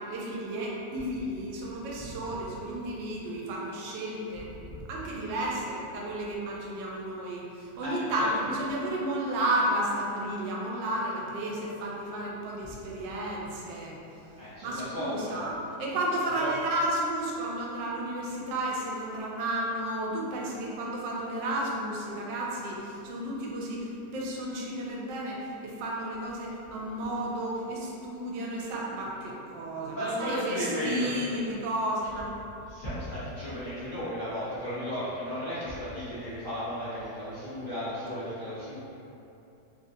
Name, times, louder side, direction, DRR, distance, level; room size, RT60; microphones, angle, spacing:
voice 1, 0.1-4.5 4.9-14.0 14.6-32.3, right 1 dB, 80° right, -3 dB, 1.2 m, -32 dB
voice 2, 7.8-8.3 12.6-12.7 14.4-15.4 16.3-16.5 29.9-31.3 32.6-38.8, equal, 55° left, -14 dB, 0.5 m, -35 dB
3.2 x 2.5 x 2.6 m, 2.7 s
omnidirectional pair, 2.0 m